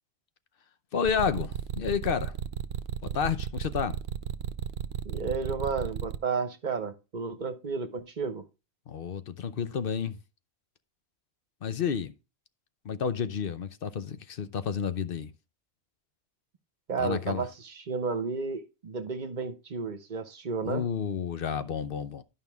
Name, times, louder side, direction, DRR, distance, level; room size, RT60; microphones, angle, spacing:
voice 1, 0.9-2.3 3.0-4.0 8.9-10.2 11.6-12.1 12.8-15.3 17.0-17.5 20.6-22.2, left 7 dB, 60° left, 0.9 m, -30 dB
sound 1, 1.1-6.2, right 9 dB, 70° right, 0.9 m, -33 dB
voice 2, 5.0-8.4 16.9-20.8, right 5 dB, 45° right, 1.0 m, -32 dB
11.0 x 5.6 x 3.5 m
omnidirectional pair, 1.1 m